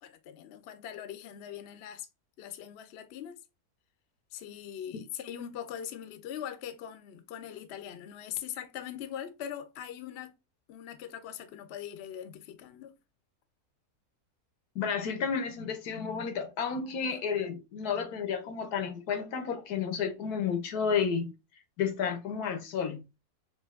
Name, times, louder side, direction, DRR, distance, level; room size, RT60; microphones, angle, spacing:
voice 1, 0.0-2.1 2.4-3.4 4.3-10.3 10.7-12.9, left 10 dB, 60° left, 0.7 m, -41 dB
voice 2, 14.7-21.3 21.8-23.2, left 6 dB, 85° left, 1.3 m, -31 dB
4.9 x 2.5 x 2.4 m
omnidirectional pair, 1.6 m